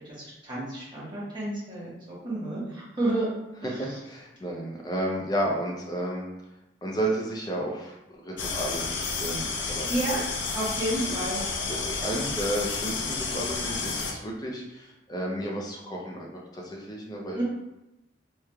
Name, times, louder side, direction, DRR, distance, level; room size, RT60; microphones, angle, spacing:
voice 1, 0.2-3.3 3.6-4.0 9.9-10.2 10.5-11.4 17.3-17.4, right 1 dB, 25° right, -9 dB, 1.2 m, -31 dB
voice 2, 3.8-6.2 6.8-9.9 11.7-17.4, right 1 dB, 20° left, -2 dB, 0.5 m, -32 dB
sound 1, 8.4-14.1, left 4 dB, 80° left, 0.5 m, -31 dB
3.5 x 3.0 x 2.2 m, 0.94 s
head